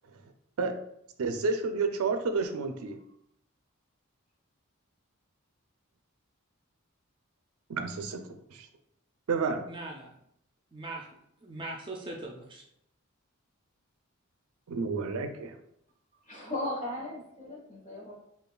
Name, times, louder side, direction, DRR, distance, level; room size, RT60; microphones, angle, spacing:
voice 1, 1.2-3.0 7.7-8.7 9.3-9.7 14.7-15.6, right 4 dB, 90° right, 7 dB, 0.4 m, -30 dB
voice 2, 9.7-10.1 10.7-12.6, right 2 dB, 20° right, 0 dB, 0.4 m, -41 dB
voice 3, 16.2-18.1, left 1 dB, 40° left, -4 dB, 1.4 m, -37 dB
5.4 x 2.4 x 2.2 m, 0.74 s
head